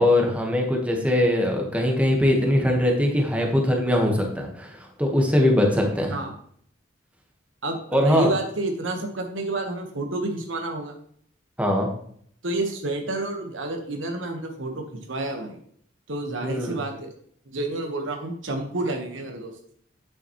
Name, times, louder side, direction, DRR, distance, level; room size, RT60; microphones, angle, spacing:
voice 1, 0.0-6.2 7.9-8.3 11.6-11.9 16.4-16.8, left 1 dB, 5° right, 1 dB, 1.3 m, -21 dB
voice 2, 7.6-10.9 12.4-15.6 16.1-17.1 17.5-19.5, right 2 dB, 75° right, 4 dB, 1.2 m, -29 dB
9.0 x 7.0 x 3.1 m, 0.62 s
head